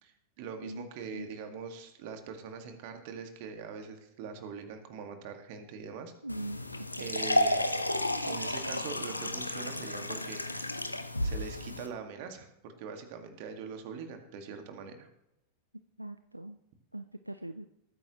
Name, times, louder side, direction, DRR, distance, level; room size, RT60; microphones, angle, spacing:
voice 1, 0.0-6.1 7.0-7.6 8.2-10.8 11.2-15.1, right 5 dB, 50° right, 6 dB, 1.9 m, -43 dB
voice 2, 6.2-6.6 7.0-7.1 16.0-16.6 16.9-17.7, right 1 dB, 85° right, 11 dB, 0.4 m, -40 dB
sound 1, 6.3-11.9, left 1 dB, 85° left, 0.8 m, -32 dB
20.0 x 9.2 x 3.1 m, 0.84 s
figure-of-eight pair, 90°, 0 cm